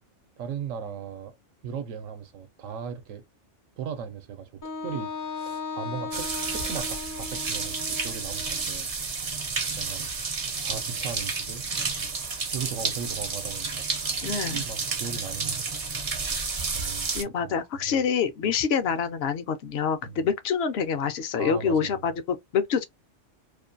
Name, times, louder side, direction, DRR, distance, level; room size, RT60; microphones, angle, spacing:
voice 1, 0.4-1.3 1.6-3.2 3.8-8.9 9.8-10.1 10.6-11.6 12.5-13.9 14.5-15.6 16.3-17.1 17.4-18.0 18.4-18.6 20.0-20.2 21.4-22.0, right 7 dB, 85° right, 0.9 m, -37 dB
Wind instrument woodwind instrument, 4.6-8.6, left 4 dB, 25° left, 0.4 m, -36 dB
sound 1, 6.1-17.2, right 4 dB, 45° right, 0.5 m, -31 dB
voice 2, 14.2-14.6 16.3-16.4 17.1-22.8, left 6 dB, 65° left, 0.7 m, -26 dB
2.5 x 2.1 x 2.5 m
omnidirectional pair, 1.3 m